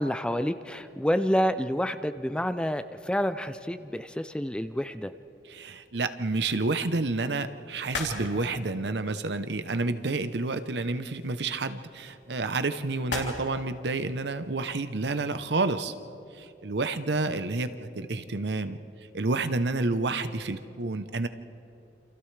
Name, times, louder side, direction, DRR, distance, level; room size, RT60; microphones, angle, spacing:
voice 1, 0.0-5.1, equal, 5° left, 10 dB, 0.4 m, -28 dB
voice 2, 5.5-15.9 16.3-18.8 19.1-21.3, right 3 dB, 70° right, 10 dB, 0.8 m, -29 dB
sound 1, 6.5-15.9, left 3 dB, 80° left, 3.4 m, -43 dB
28.5 x 27.5 x 3.3 m, 2.8 s
head